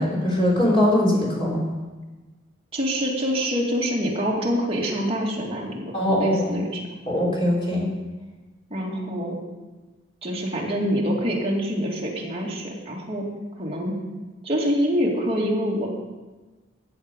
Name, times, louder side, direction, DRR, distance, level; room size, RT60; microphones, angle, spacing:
voice 1, 0.0-1.6 5.9-6.7 7.1-7.9, left 1 dB, 25° left, -4 dB, 3.5 m, -21 dB
voice 2, 2.7-6.8 8.7-9.4 10.2-13.2 13.6-13.9 14.4-15.9, equal, 25° right, -3 dB, 2.4 m, -25 dB
14.0 x 8.0 x 5.4 m, 1.2 s
head